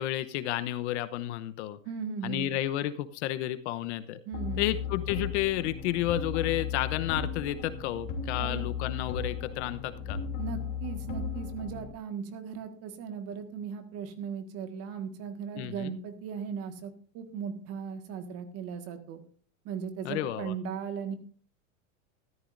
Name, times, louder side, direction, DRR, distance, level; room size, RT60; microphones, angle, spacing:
voice 1, 0.0-1.8 2.2-4.2 4.6-10.2 15.6-15.9 20.0-20.5, left 13 dB, 60° left, 12 dB, 0.9 m, -31 dB
voice 2, 1.9-2.5 4.3-4.6 8.4-8.7 10.4-19.2 19.7-21.1, right 6 dB, 35° right, 7 dB, 1.7 m, -37 dB
Interscope (stealth music), 4.3-11.9, left 6 dB, 35° left, 2.8 m, -35 dB
14.0 x 13.0 x 2.6 m, 0.42 s
supercardioid pair, 150°, 40 cm